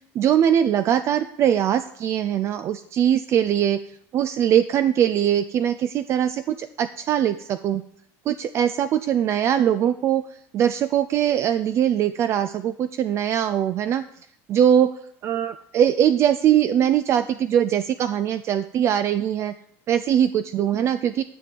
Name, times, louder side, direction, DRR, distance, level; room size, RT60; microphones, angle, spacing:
voice 1, 0.2-3.8 4.1-7.8 8.3-10.2 10.5-14.0 14.5-14.9 15.2-19.5 19.9-21.2, right 10 dB, 40° right, 11 dB, 0.4 m, -21 dB
10.0 x 6.1 x 5.1 m, 0.67 s
cardioid pair, 135°, 7 cm